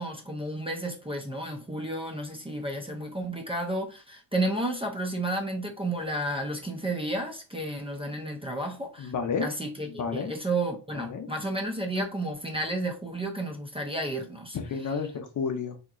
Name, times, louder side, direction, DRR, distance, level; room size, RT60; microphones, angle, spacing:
voice 1, 0.0-9.1 9.4-14.6, right 1 dB, 15° right, 0.5 m, -32 dB
voice 2, 9.0-9.5 9.9-10.3 10.9-11.3 14.5-15.8, left 5 dB, 45° left, 0.7 m, -31 dB
3.6 x 2.9 x 2.4 m
cardioid pair, 100°, 43 cm